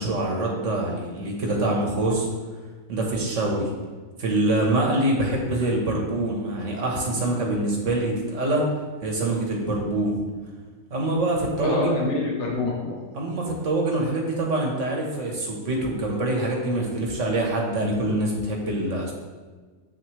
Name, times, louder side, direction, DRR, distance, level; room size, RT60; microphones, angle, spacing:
voice 1, 0.0-2.3 2.9-3.7 4.2-8.6 9.0-10.2 10.9-12.0 13.1-19.1, right 2 dB, 90° right, -1 dB, 1.8 m, -25 dB
voice 2, 11.6-13.1, left 3 dB, 70° left, -3 dB, 1.5 m, -26 dB
7.9 x 6.3 x 3.3 m, 1.4 s
omnidirectional pair, 1.2 m